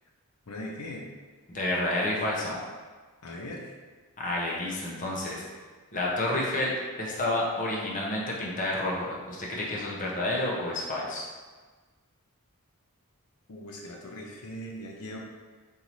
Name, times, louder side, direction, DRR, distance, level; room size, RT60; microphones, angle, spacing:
voice 1, 0.5-1.0 3.2-3.7 13.5-15.2, left 1 dB, 90° left, -1 dB, 0.7 m, -40 dB
voice 2, 1.5-2.6 4.2-5.4 5.9-6.7 7.0-11.2, left 1 dB, 35° left, -4 dB, 0.8 m, -29 dB
5.4 x 2.7 x 3.0 m, 1.4 s
head